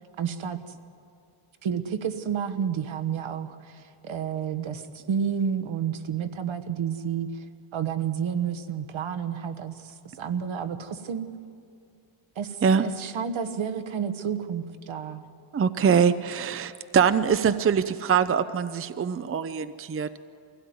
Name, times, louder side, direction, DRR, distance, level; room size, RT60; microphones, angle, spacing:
voice 1, 0.2-0.8 1.6-7.4 7.7-11.3 12.4-15.2, right 7 dB, 70° right, 10 dB, 1.4 m, -30 dB
voice 2, 15.5-20.2, right 7 dB, 30° right, 12 dB, 0.6 m, -23 dB
24.5 x 16.5 x 9.5 m, 2.5 s
wide cardioid pair, 125°, 49 cm